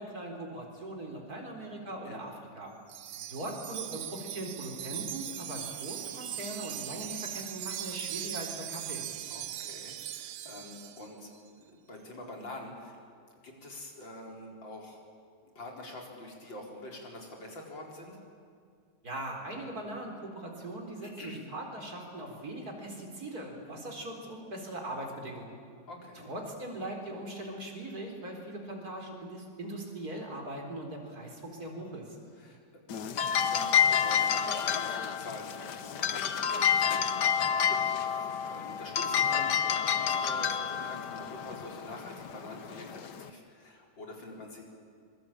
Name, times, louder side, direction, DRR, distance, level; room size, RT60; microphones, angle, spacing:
voice 1, 0.0-2.7 3.2-9.0 19.0-25.5 26.2-32.2, right 1 dB, 55° right, 2 dB, 4.6 m, -40 dB
Wind chime, 2.9-11.1, right 11 dB, 90° right, 1.6 m, -40 dB
voice 2, 9.3-13.0 13.4-15.0 15.4-18.2 21.0-21.4 25.9-26.3 32.4-32.6 32.9-44.6, left 1 dB, 85° left, 0 dB, 5.1 m, -46 dB
Dresden Zwinger chimes, 32.9-43.3, left 8 dB, 70° left, 1.6 m, -29 dB
25.5 x 22.5 x 8.8 m, 2.3 s
omnidirectional pair, 2.0 m